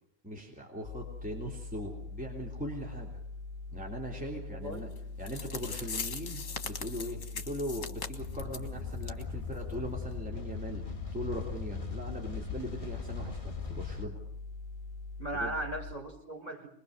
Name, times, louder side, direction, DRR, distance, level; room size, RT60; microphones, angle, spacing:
voice 1, 0.2-3.2 3.7-4.9 5.2-14.2 15.3-15.6, equal, 5° right, -1 dB, 3.2 m, -40 dB
sound 1, 0.8-15.9, left 3 dB, 45° right, 5.4 m, -43 dB
voice 2, 4.5-4.9 15.2-16.7, right 1 dB, 30° right, 0 dB, 4.9 m, -37 dB
sound 2, 5.0-5.1 5.3-8.7 9.0-9.2 9.5-9.6 10.1-10.2, left 5 dB, 65° left, 1.8 m, -40 dB
sound 3, 8.2-14.0, left 6 dB, 25° left, 1.6 m, -40 dB
25.5 x 21.0 x 6.6 m, 0.65 s
omnidirectional pair, 1.4 m